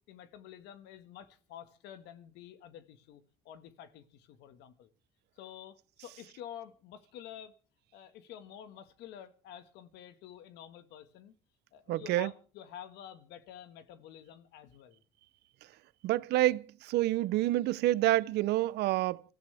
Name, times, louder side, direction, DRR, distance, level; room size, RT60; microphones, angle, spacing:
voice 1, 0.1-4.9 5.3-7.5 7.9-11.4 11.7-15.0, left 10 dB, 90° left, 1.7 m, -49 dB
voice 2, 11.9-12.3 16.0-19.2, right 16 dB, 80° right, 0.7 m, -28 dB
26.0 x 14.0 x 3.4 m
cardioid pair, 110°, 17 cm